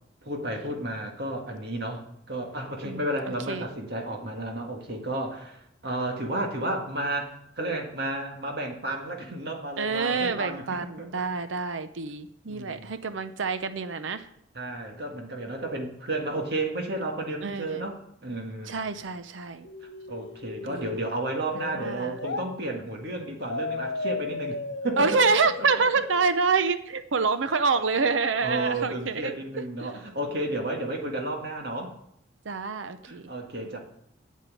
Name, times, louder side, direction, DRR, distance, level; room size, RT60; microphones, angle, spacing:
voice 1, 0.2-10.6 11.0-11.1 12.4-12.9 14.5-18.8 20.1-25.2 25.7-25.8 28.4-31.9 33.0-33.8, right 1 dB, 60° right, 2 dB, 1.9 m, -32 dB
voice 2, 2.8-3.7 9.8-14.3 17.4-17.9 18.7-19.7 20.7-21.0 21.5-22.2 25.0-29.3 29.8-29.9 32.4-33.2, right 4 dB, 90° right, 11 dB, 0.7 m, -27 dB
sound 1, 19.6-22.5 23.5-26.5, left 3 dB, 75° left, 1.2 m, -35 dB
9.2 x 7.4 x 8.3 m, 0.74 s
head